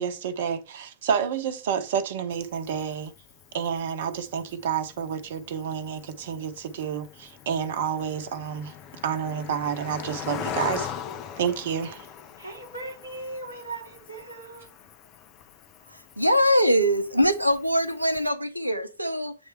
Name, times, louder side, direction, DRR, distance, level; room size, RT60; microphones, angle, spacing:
voice 1, 0.0-3.1 3.5-8.7 9.0-10.9 11.4-12.1, right 7 dB, 55° right, 0.9 m, -29 dB
Cricket, 2.3-18.3, left 8 dB, 35° left, 0.8 m, -41 dB
voice 2, 12.4-14.8, right 2 dB, 85° left, 3.7 m, -38 dB
voice 3, 15.9-19.3, equal, 90° right, 0.7 m, -23 dB
8.8 x 3.3 x 4.5 m
figure-of-eight pair, 90°, 0 cm